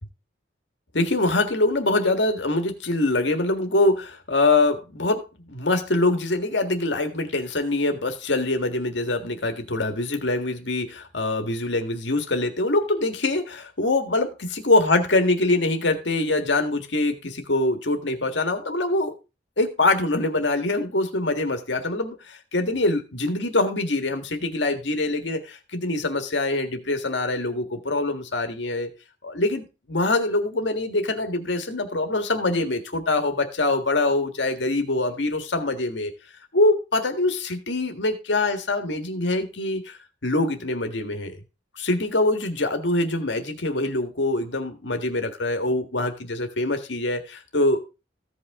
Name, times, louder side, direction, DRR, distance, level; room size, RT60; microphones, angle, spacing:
voice 1, 0.9-19.1 19.6-28.9 29.2-36.1 36.5-41.4 41.7-47.8, left 2 dB, 70° left, 6 dB, 1.7 m, -24 dB
15.5 x 5.4 x 3.7 m, 0.30 s
head